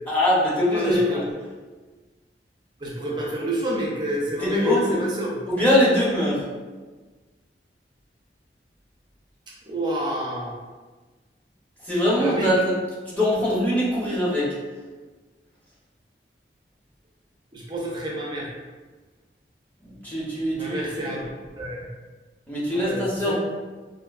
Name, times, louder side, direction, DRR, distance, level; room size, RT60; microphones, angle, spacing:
voice 1, 0.1-1.2 4.4-5.0 5.5-6.4 11.8-12.7 13.0-14.5 19.8-21.1 22.5-23.3, left 1 dB, 10° left, -7 dB, 0.8 m, -22 dB
voice 2, 0.7-1.2 2.8-5.4 9.7-10.6 12.2-12.5 17.5-18.5 20.5-21.3 21.6-21.9 22.7-23.3, right 1 dB, 25° right, -3 dB, 0.5 m, -28 dB
4.3 x 2.6 x 2.3 m, 1.3 s
head